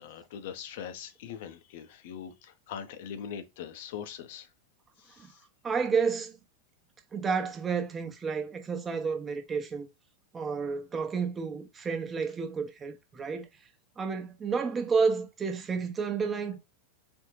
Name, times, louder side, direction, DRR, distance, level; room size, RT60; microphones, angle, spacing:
voice 1, 0.0-4.5 5.0-5.4, left 8 dB, 50° left, 0.9 m, -41 dB
voice 2, 5.6-6.4 7.1-9.9 10.3-13.5 14.0-16.6, right 5 dB, 20° right, 1.1 m, -30 dB
4.4 x 3.3 x 3.2 m
figure-of-eight pair, 90°, 0 cm